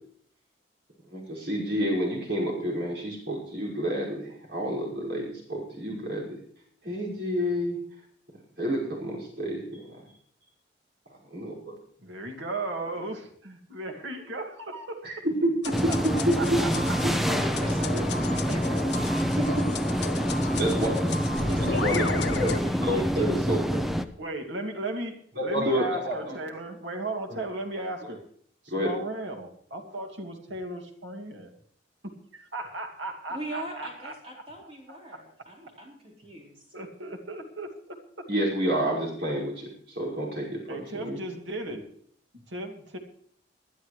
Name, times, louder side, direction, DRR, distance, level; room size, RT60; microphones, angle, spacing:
voice 1, 1.1-6.4 6.8-7.8 8.6-10.0 11.3-11.8 15.0-15.5 18.2-18.3 19.4-19.6 20.6-21.1 21.6-23.8 25.4-26.3 27.3-27.4 28.7-28.9 38.3-41.2, equal, 65° right, -3 dB, 5.5 m, -29 dB
voice 2, 12.0-15.0 15.9-17.0 18.5-18.8 24.2-28.2 28.6-31.5 32.3-34.1 34.9-35.2 36.7-38.3 40.7-41.9 42.3-43.0, right 2 dB, 90° right, 4 dB, 2.3 m, -36 dB
sound 1, 15.6-22.6, left 3 dB, 65° left, 1.3 m, -34 dB
sound 2, 15.7-24.0, equal, ahead, 0.6 m, -27 dB
voice 3, 17.3-20.7 21.4-22.3 22.6-23.4 33.3-36.7, right 1 dB, 30° right, -4 dB, 4.2 m, -41 dB
21.0 x 11.0 x 3.2 m, 0.62 s
head